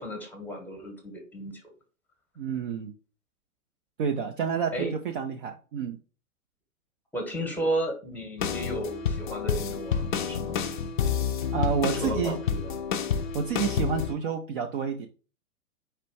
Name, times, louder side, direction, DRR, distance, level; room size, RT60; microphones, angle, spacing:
voice 1, 0.0-1.5 4.7-4.9 7.1-10.7 11.9-12.8, right 1 dB, 5° left, 3 dB, 1.0 m, -33 dB
voice 2, 2.4-2.9 4.0-6.0 11.5-12.4 13.3-15.1, right 6 dB, 40° right, 4 dB, 0.5 m, -29 dB
sound 1, 8.4-14.1, left 7 dB, 35° left, 0.4 m, -29 dB
4.3 x 2.5 x 4.5 m, 0.36 s
figure-of-eight pair, 115°, 44 cm